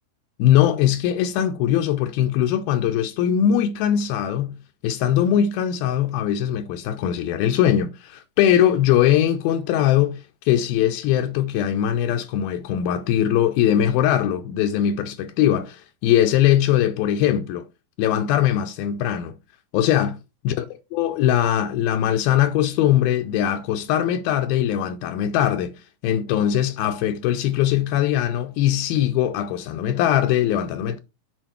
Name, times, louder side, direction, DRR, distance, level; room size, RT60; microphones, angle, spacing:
voice 1, 0.4-4.6 4.8-17.7 18.0-19.4 19.7-20.2 20.4-20.7 20.9-31.0, left 11 dB, 80° left, 2.4 m, -21 dB
8.0 x 4.5 x 4.3 m
omnidirectional pair, 4.4 m